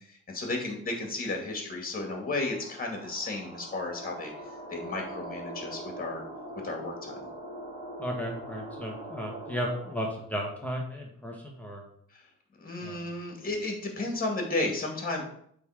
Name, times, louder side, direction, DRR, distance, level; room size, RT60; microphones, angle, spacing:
voice 1, 0.3-4.3 4.7-6.2 6.6-7.3 12.1-12.2 12.6-15.2, left 2 dB, 30° left, 2 dB, 2.3 m, -33 dB
sound 1, 1.9-10.3, right 1 dB, 25° right, 3.0 m, -43 dB
voice 2, 8.0-11.8 12.8-13.1, equal, 5° left, -1 dB, 1.5 m, -34 dB
8.1 x 3.9 x 5.0 m, 0.67 s
cardioid pair, 90°, 30 cm